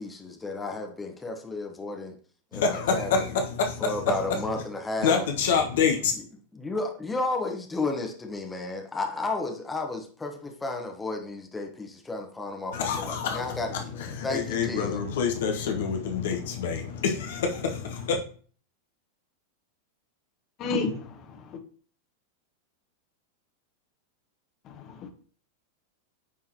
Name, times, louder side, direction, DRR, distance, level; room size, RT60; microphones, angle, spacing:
voice 1, 0.0-2.1 2.5-3.3 3.8-5.3 6.5-13.9 14.2-15.0, left 2 dB, 10° left, 2 dB, 1.1 m, -32 dB
voice 2, 2.5-4.6 5.0-6.1 12.7-18.2, left 6 dB, 55° left, 3 dB, 0.8 m, -27 dB
voice 3, 20.6-21.6 24.7-25.1, left 3 dB, 35° left, 6 dB, 1.1 m, -32 dB
9.3 x 3.7 x 3.0 m, 0.43 s
figure-of-eight pair, 90°, 0 cm